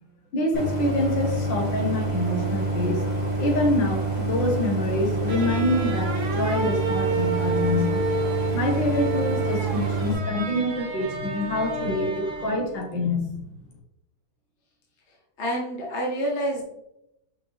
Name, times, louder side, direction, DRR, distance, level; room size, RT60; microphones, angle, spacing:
voice 1, 0.3-8.1 8.5-13.4, left 1 dB, 65° left, 1 dB, 1.9 m, -26 dB
Idling, 0.5-10.1, right 1 dB, 20° left, 1.9 m, -27 dB
sound 1, 5.3-12.8, right 4 dB, 50° right, 0.9 m, -30 dB
voice 2, 15.1-16.6, equal, 40° left, -1 dB, 1.2 m, -28 dB
5.6 x 5.2 x 3.3 m, 0.82 s
omnidirectional pair, 2.2 m